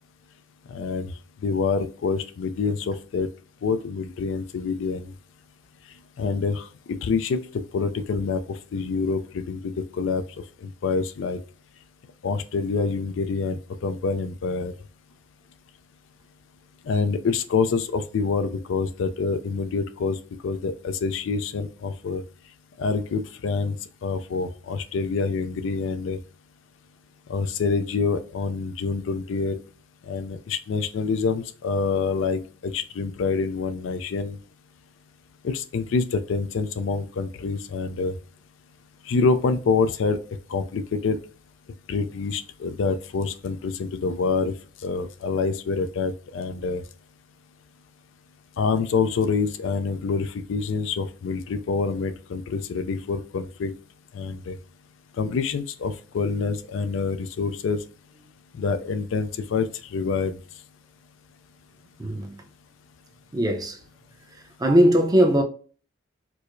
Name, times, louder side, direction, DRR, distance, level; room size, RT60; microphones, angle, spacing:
voice 1, 0.7-1.1 1.4-3.3 3.6-5.1 6.2-7.4 7.7-10.2 10.6-11.4 12.2-14.7 16.9-20.2 20.4-22.2 22.8-23.8 24.0-26.2 27.3-29.6 30.1-34.4 35.4-38.1 39.1-40.2 40.5-41.2 41.9-44.5 44.8-46.8 48.6-53.7 54.1-54.6 55.2-57.8 58.5-60.4, left 4 dB, 70° left, 0.4 m, -26 dB
voice 2, 62.0-62.3 63.3-63.8 64.6-65.4, equal, 20° right, 0.6 m, -19 dB
4.6 x 2.0 x 2.5 m
head